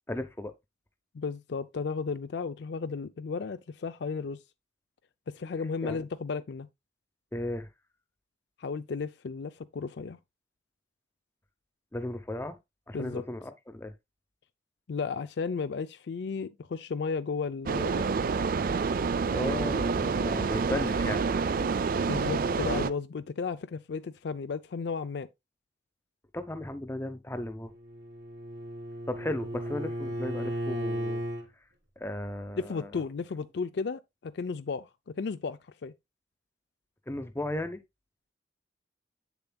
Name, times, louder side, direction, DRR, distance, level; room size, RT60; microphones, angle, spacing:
voice 1, 0.1-0.5 5.8-6.0 7.3-7.7 11.9-12.6 12.9-13.9 19.3-21.2 26.3-27.7 29.1-31.2 32.0-33.0 37.1-37.8, left 1 dB, 10° left, 0.7 m, -35 dB
voice 2, 1.1-4.4 5.3-6.7 8.6-10.2 12.9-13.2 14.9-18.0 22.1-25.3 32.6-34.9 35.1-35.9, left 5 dB, 60° left, 0.4 m, -34 dB
sound 1, 17.7-22.9, right 5 dB, 45° right, 0.4 m, -28 dB
Bowed string instrument, 27.7-31.5, right 1 dB, 65° right, 3.0 m, -35 dB
8.0 x 6.9 x 2.2 m
head